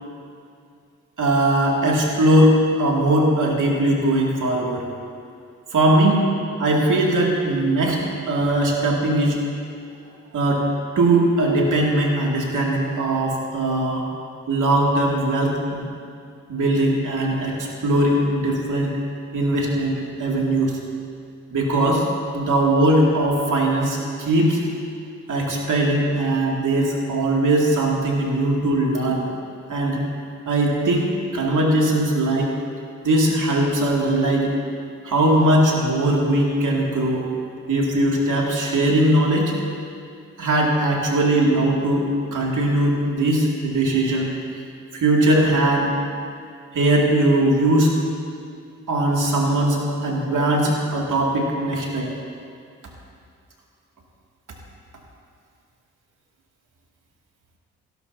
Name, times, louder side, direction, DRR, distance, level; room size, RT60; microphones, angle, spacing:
voice 1, 1.2-4.9 5.7-6.2 6.6-9.4 10.3-10.6 11.0-14.0 14.5-15.9 16.5-19.0 19.3-20.8 21.5-22.0 22.3-24.6 25.3-29.3 29.7-30.0 30.5-32.5 33.0-34.6 35.0-37.3 37.7-39.5 40.4-44.3 44.9-45.9 46.7-47.9 48.9-52.1, right 1 dB, 70° right, -2 dB, 2.5 m, -20 dB
17.0 x 11.5 x 2.8 m, 2.3 s
supercardioid pair, 45°, 32 cm